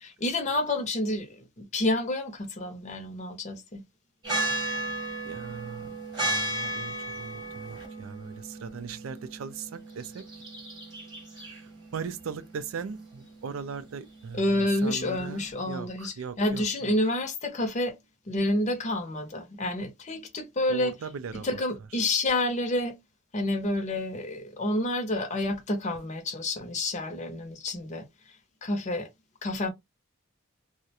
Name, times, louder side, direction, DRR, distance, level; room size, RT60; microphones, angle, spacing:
voice 1, 0.0-3.8 14.3-18.0 18.3-20.9 21.4-23.0 23.3-28.1 28.6-29.1 29.4-29.7, left 1 dB, 35° left, 0.6 m, -29 dB
sound 1, 4.2-15.5, right 1 dB, 20° right, 1.0 m, -35 dB
voice 2, 5.2-10.3 11.3-16.9 20.7-21.6, right 5 dB, 80° right, 0.4 m, -39 dB
2.4 x 2.1 x 2.7 m
head